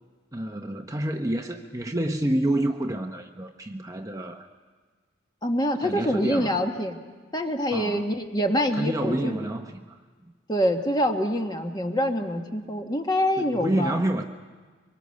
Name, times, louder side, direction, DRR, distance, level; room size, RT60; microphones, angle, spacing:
voice 1, 0.3-4.5 5.8-6.6 7.7-8.1 8.7-10.0 13.4-14.2, right 1 dB, 15° right, 4 dB, 0.8 m, -28 dB
voice 2, 5.4-7.0 7.3-9.4 10.5-13.9, equal, 20° left, 4 dB, 1.5 m, -25 dB
24.5 x 23.5 x 6.6 m, 1.5 s
head